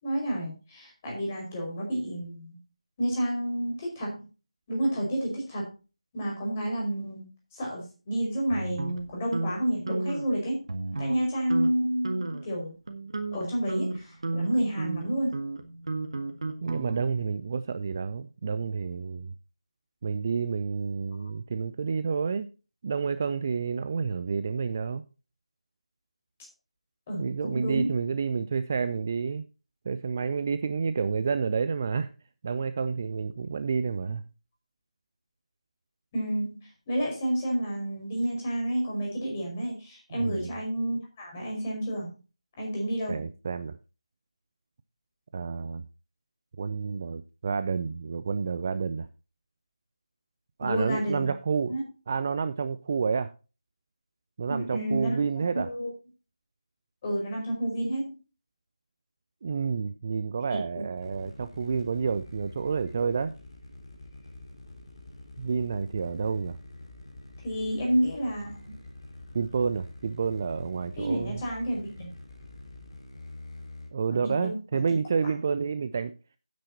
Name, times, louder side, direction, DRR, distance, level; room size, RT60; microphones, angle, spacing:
voice 1, 0.0-2.6 3.0-4.3 4.7-5.7 6.1-10.6 11.0-12.7 13.3-15.4 21.2-21.3 27.1-27.9 36.1-42.1 42.6-43.2 50.6-51.3 51.7-51.8 54.5-55.1 55.5-55.9 57.0-58.1 60.5-60.9 67.4-68.7 71.0-72.1 74.2-74.6, right 1 dB, 20° left, -1 dB, 5.0 m, -30 dB
sound 1, 8.5-9.5 9.9-10.3 10.7-11.2 11.5-11.7 12.0-12.5 12.9-17.2, right 2 dB, 45° right, 1.7 m, -33 dB
voice 2, 16.6-19.3 20.0-22.5 22.8-25.0 27.2-29.4 29.8-32.1 32.4-34.2 40.1-40.6 43.1-43.8 45.3-45.8 46.6-49.1 50.6-51.8 52.1-53.3 54.4-55.7 59.4-63.3 65.4-66.6 69.3-71.4 73.9-76.1, right 5 dB, 25° right, 12 dB, 0.4 m, -29 dB
sound 2, 61.0-73.9, left 2 dB, 40° left, 5.1 m, -46 dB
14.0 x 9.4 x 2.8 m, 0.33 s
figure-of-eight pair, 160°, 4 cm